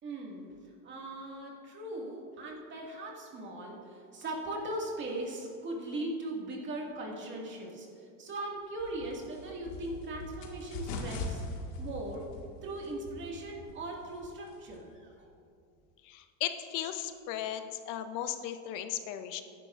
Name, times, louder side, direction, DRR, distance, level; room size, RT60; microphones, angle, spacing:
voice 1, 0.0-0.5 0.8-11.4 11.8-12.3 12.6-15.3, right 1 dB, 30° right, -1 dB, 2.1 m, -39 dB
sound 1, 8.8-14.9, left 2 dB, 85° left, 1.9 m, -42 dB
voice 2, 16.0-19.4, left 11 dB, 50° left, 9 dB, 0.8 m, -36 dB
17.5 x 10.5 x 2.6 m, 2.4 s
cardioid pair, 150°, 38 cm